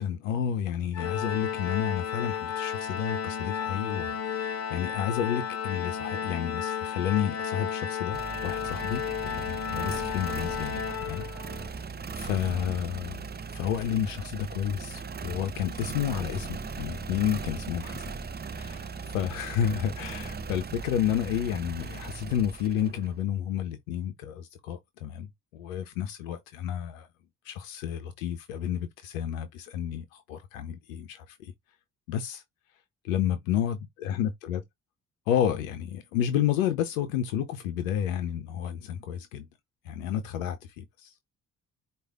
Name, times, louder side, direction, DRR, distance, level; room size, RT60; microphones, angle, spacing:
voice 1, 0.0-11.8 12.1-18.1 18.5-27.1 27.4-31.5 32.1-32.4 33.0-34.6 35.3-39.5 39.8-41.1, left 9 dB, 90° left, 0.5 m, -31 dB
Organ, 0.9-11.7, left 8 dB, 40° left, 1.0 m, -33 dB
sound 1, 8.1-23.2, right 5 dB, 25° right, 0.6 m, -38 dB
4.7 x 2.4 x 3.4 m
hypercardioid pair, 45°, 39 cm